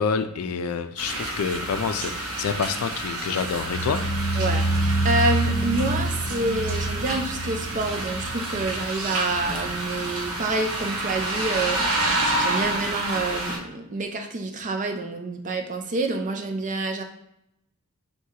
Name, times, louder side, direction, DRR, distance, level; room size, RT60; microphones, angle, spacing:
voice 1, 0.0-4.0, left 6 dB, 80° left, 9 dB, 0.4 m, -27 dB
sound 1, 1.0-13.6, right 2 dB, 65° right, 0.8 m, -29 dB
sound 2, 3.5-10.5 10.8-11.2 11.6-11.7, right 1 dB, 55° left, 0.9 m, -28 dB
voice 2, 4.4-17.0, right 2 dB, 35° right, 4 dB, 0.5 m, -28 dB
6.1 x 2.2 x 2.8 m, 0.83 s
head